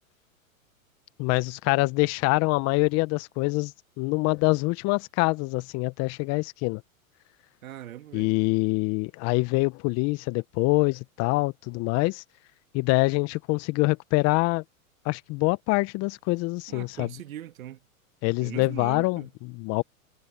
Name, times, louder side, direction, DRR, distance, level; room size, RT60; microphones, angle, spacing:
voice 1, 1.2-6.8 8.1-12.2 12.7-14.6 15.0-17.1 18.2-19.2 19.5-19.8, left 25 dB, 35° left, 1.0 m, -25 dB
voice 2, 7.6-8.3 16.7-17.9 18.4-19.3, right 12 dB, 70° right, 2.2 m, -40 dB
hypercardioid pair, 115°, 43 cm